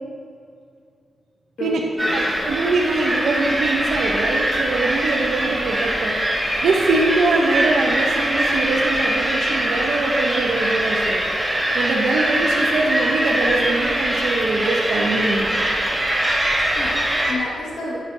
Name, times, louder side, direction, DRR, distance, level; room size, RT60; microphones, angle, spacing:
voice 1, 1.6-2.4 16.7-18.0, left 1 dB, 80° left, -6 dB, 2.1 m, -31 dB
sound 1, 2.0-17.3, right 1 dB, 5° right, 1.8 m, -22 dB
voice 2, 2.1-11.2 11.7-15.5, right 3 dB, 85° right, -1 dB, 0.9 m, -23 dB
11.0 x 8.5 x 2.8 m, 2.2 s
cardioid pair, 100°, 0 cm